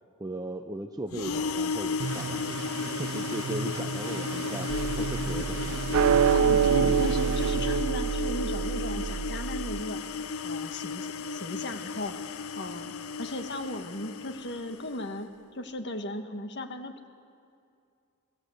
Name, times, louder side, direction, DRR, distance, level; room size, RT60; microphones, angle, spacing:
voice 1, 0.2-2.5 2.9-6.2, right 1 dB, 15° right, 5 dB, 0.7 m, -38 dB
sound 1, 1.1-15.0, left 5 dB, 80° left, 0.7 m, -34 dB
sound 2, 2.0-8.5, right 3 dB, 60° right, 0.9 m, -36 dB
sound 3, 4.7-9.8, right 7 dB, 80° right, 0.5 m, -26 dB
voice 2, 6.3-10.0 10.4-17.1, left 1 dB, 55° left, 7 dB, 1.6 m, -36 dB
26.5 x 18.0 x 8.0 m, 2.4 s
head